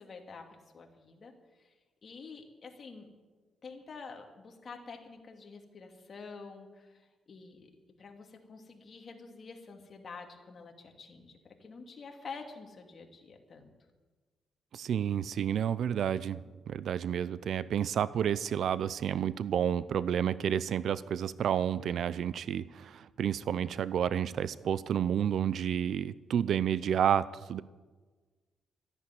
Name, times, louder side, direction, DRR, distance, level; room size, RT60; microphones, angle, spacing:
voice 1, 0.0-1.7 2.0-3.1 3.6-7.7 8.0-13.7 23.4-23.7, left 4 dB, 45° left, 3 dB, 2.7 m, -48 dB
voice 2, 14.7-16.4 16.7-27.6, right 9 dB, 70° right, 17 dB, 0.5 m, -30 dB
13.5 x 10.5 x 9.9 m, 1.3 s
cardioid pair, 100°, 0 cm